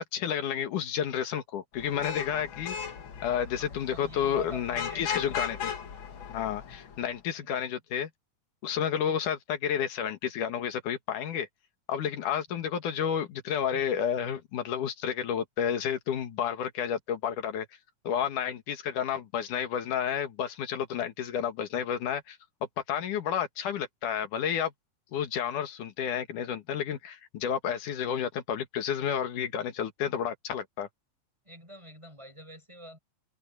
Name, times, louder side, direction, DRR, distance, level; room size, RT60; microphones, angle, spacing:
voice 1, 0.0-2.8 3.2-5.7 6.3-8.1 8.6-11.5 11.9-17.7 18.0-22.4 22.9-24.7 25.1-30.9, left 8 dB, 90° left, 3.2 m, -31 dB
Vehicle horn car horn honking / Traffic noise roadway noise, 1.8-7.1, left 7 dB, 50° left, 1.8 m, -38 dB
voice 2, 3.5-5.3 7.3-7.5 22.9-23.1 31.4-33.0, equal, 10° right, 6.1 m, -47 dB
open air
omnidirectional pair, 3.5 m